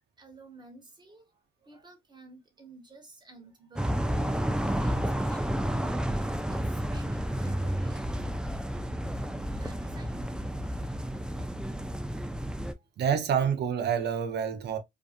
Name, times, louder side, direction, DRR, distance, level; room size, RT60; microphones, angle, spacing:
voice 1, 0.2-1.3 1.6-6.2 6.5-8.0 9.6-10.3 12.8-12.9, right 2 dB, 20° right, 1.2 m, -52 dB
sound 1, 3.8-12.7, equal, 5° right, 0.3 m, -31 dB
voice 2, 13.0-14.8, right 7 dB, 60° right, 0.6 m, -27 dB
2.5 x 2.4 x 2.5 m
cardioid pair, 90°, 20 cm